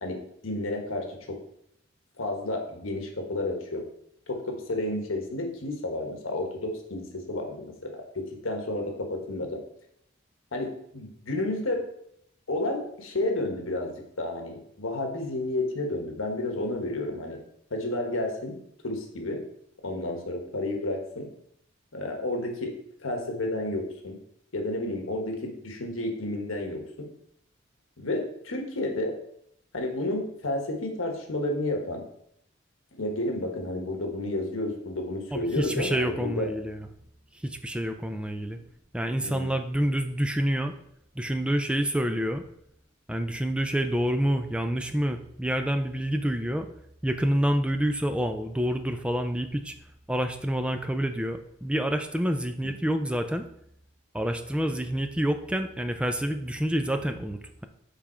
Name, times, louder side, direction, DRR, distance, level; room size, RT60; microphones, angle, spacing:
voice 1, 0.0-1.4 2.2-3.8 4.3-9.6 10.5-11.8 12.5-17.4 17.7-19.4 19.8-21.3 21.9-24.2 24.5-27.1 28.0-29.2 29.7-32.0 32.9-36.5 39.2-39.6 52.6-52.7, left 1 dB, 80° left, 3 dB, 1.2 m, -31 dB
voice 2, 35.3-36.9 37.4-38.6 38.9-40.7 41.2-42.4 43.1-46.7 47.0-49.7 50.1-53.5 54.1-57.7, equal, 5° right, 7 dB, 0.4 m, -28 dB
7.0 x 3.6 x 4.3 m, 0.72 s
head